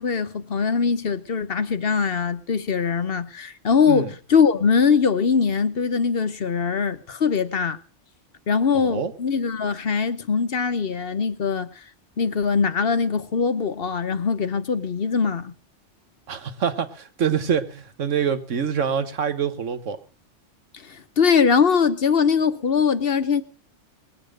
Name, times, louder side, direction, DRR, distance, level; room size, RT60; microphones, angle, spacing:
voice 1, 0.0-7.8 8.5-11.7 12.2-15.5 20.7-23.4, left 6 dB, 55° left, 1.1 m, -22 dB
voice 2, 8.7-9.1 16.3-20.0, right 7 dB, 80° right, 1.6 m, -25 dB
20.0 x 8.2 x 6.5 m
omnidirectional pair, 1.3 m